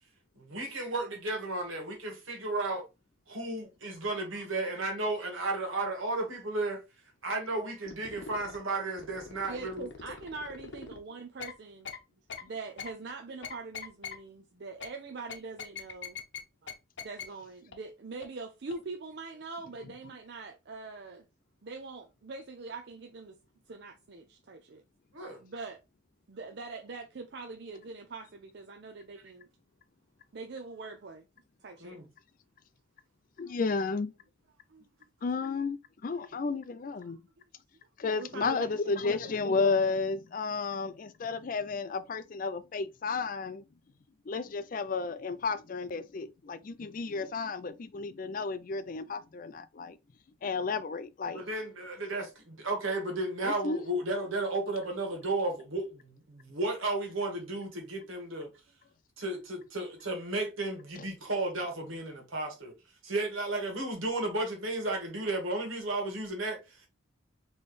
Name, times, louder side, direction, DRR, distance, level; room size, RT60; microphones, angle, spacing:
voice 1, 0.4-2.8 3.3-6.8 7.2-9.9 25.1-25.4 31.8-32.1 51.3-58.5 59.2-62.7 63.0-66.9, right 2 dB, 80° right, 1.6 m, -33 dB
sound 1, 7.9-8.6 9.0-11.0 11.4-11.5 11.8-12.0 12.3-12.4 12.8-12.9 13.4-14.2 14.8-14.9 15.3-16.4 16.7-16.8 17.0-17.2 17.7-17.8 18.2-18.3 18.7-18.8, left 6 dB, 60° left, 0.8 m, -41 dB
voice 2, 9.5-11.9 12.4-16.2 16.6-16.7 17.0-21.3 21.6-23.4 23.7-24.8 25.4-25.8 26.3-29.5 30.3-31.2 31.6-32.0 33.4-33.6 34.7-35.1 35.5-35.7 36.1-36.3 37.0-37.2 38.1-39.4, right 3 dB, 55° right, 0.5 m, -43 dB
voice 3, 33.4-34.1 35.2-37.2 38.0-43.6 44.3-50.0 50.4-51.4 53.4-53.8, left 4 dB, 40° left, 0.4 m, -32 dB
4.3 x 3.1 x 3.2 m
head